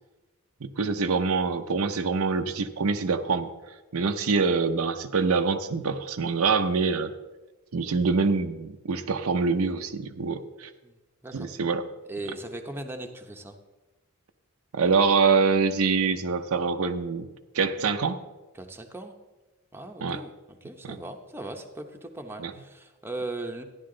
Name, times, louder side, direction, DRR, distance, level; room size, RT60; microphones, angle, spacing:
voice 1, 0.6-3.5 3.9-7.1 7.7-10.7 11.3-11.8 14.7-17.3 17.5-18.2 20.0-20.2 20.8-21.0 22.4-22.5, right 4 dB, 70° right, 8 dB, 0.6 m, -25 dB
voice 2, 12.1-13.6 18.5-19.1 19.7-23.6, right 2 dB, 10° right, 3 dB, 0.8 m, -38 dB
13.5 x 10.5 x 3.8 m, 1.1 s
head